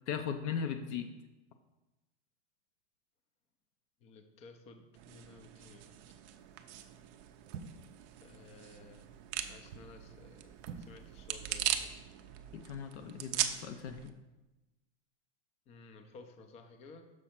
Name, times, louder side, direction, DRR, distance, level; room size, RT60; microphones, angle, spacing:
voice 1, 0.1-1.1 12.5-14.1, left 7 dB, 70° left, 7 dB, 0.7 m, -38 dB
voice 2, 4.0-5.9 8.2-9.0 9.5-11.9 15.7-17.1, left 3 dB, 20° left, 7 dB, 0.4 m, -55 dB
sound 1, 4.9-14.1, right 11 dB, 40° right, 0.4 m, -40 dB
sound 2, 6.3-6.6 7.4-8.0 9.5-10.0 10.6-11.0 11.3-11.4, right 6 dB, 85° right, 0.6 m, -47 dB
6.4 x 4.1 x 5.7 m, 1.1 s
supercardioid pair, 145°, 36 cm